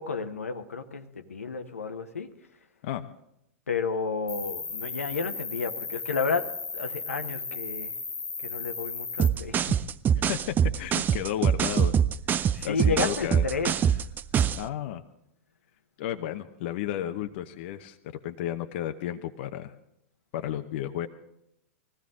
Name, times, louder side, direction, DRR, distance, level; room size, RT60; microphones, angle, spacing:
voice 1, 0.0-2.3 3.7-8.0 8.4-9.8 12.5-14.1, left 5 dB, 80° left, 7 dB, 1.1 m, -32 dB
Cricket, 4.3-9.3, left 4 dB, 15° left, 1.1 m, -35 dB
sound 1, 9.2-14.7, right 8 dB, 25° right, 0.5 m, -24 dB
voice 2, 10.1-12.0 12.4-13.5 14.6-15.0 16.0-18.0 18.2-19.7 20.3-21.1, left 12 dB, 55° left, 7 dB, 0.8 m, -33 dB
20.5 x 15.5 x 3.7 m, 0.81 s
figure-of-eight pair, 100°, 7 cm